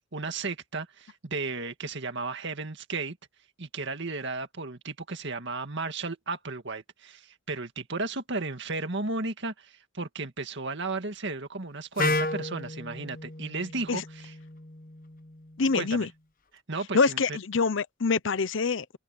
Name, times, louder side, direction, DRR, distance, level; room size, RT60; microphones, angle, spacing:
voice 1, 0.1-3.2 3.6-14.3 15.7-16.1 16.7-17.4, right 3 dB, 60° right, 2.0 m, -34 dB
Wind instrument woodwind instrument, 12.0-15.9, left 2 dB, 45° left, 1.2 m, -33 dB
voice 2, 15.6-16.1 16.9-19.0, left 4 dB, 65° left, 0.7 m, -25 dB
head